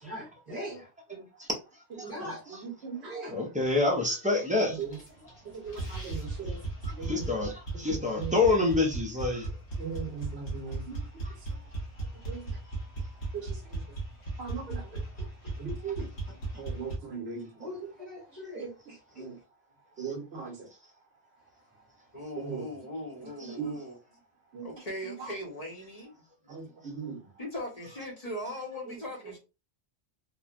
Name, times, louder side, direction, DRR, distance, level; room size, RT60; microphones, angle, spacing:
voice 1, 0.0-0.8 2.1-2.5 3.0-3.4 5.2-5.3 6.9-7.1 14.5-15.6 16.4-16.7 17.6-19.3, equal, 40° right, 1.1 m, -43 dB
voice 2, 2.0-2.3 3.1-4.8 6.8-9.5 20.0-20.1 23.4-23.5, left 3 dB, 10° right, 0.3 m, -28 dB
voice 3, 2.6-3.4 4.7-5.0 5.5-6.6 7.0-7.3 7.9-8.4 9.8-11.0 12.3-12.5 14.4-14.8 15.6-16.1 16.6-17.5 18.6-18.7 19.2-19.3 20.0-20.5 22.4-22.6 23.4-23.8 24.5-24.6 25.0-25.3 26.5-27.2, right 5 dB, 65° right, 1.1 m, -38 dB
sound 1, 4.8-5.4 5.7-17.0, right 3 dB, 70° left, 1.2 m, -37 dB
voice 4, 22.1-24.0 24.6-26.1 26.6-26.7 27.4-29.4, left 1 dB, 40° left, 0.8 m, -39 dB
3.1 x 2.1 x 2.4 m
omnidirectional pair, 1.2 m